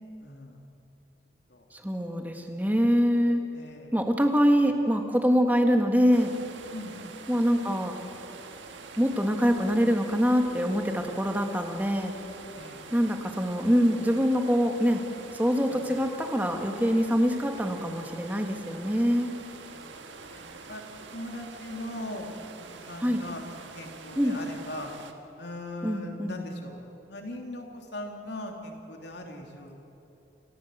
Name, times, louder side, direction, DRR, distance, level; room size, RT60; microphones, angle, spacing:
voice 1, 0.2-0.6 1.5-1.6 3.5-3.9 6.7-7.0 12.6-12.8 15.7-15.8 19.7-19.9 20.2-20.8 21.1-22.3 22.6-24.9 25.4-26.8 27.1-29.7, left 1 dB, 65° left, 2 dB, 3.0 m, -39 dB
voice 2, 1.7-3.4 3.9-6.3 7.3-8.0 9.0-12.1 12.9-15.0 15.3-19.3 23.0-23.2 24.1-24.4 25.8-26.4, equal, 10° right, 4 dB, 1.7 m, -24 dB
sound 1, 6.1-25.1, right 4 dB, 80° right, 1.6 m, -45 dB
28.5 x 15.5 x 8.0 m, 2.9 s
head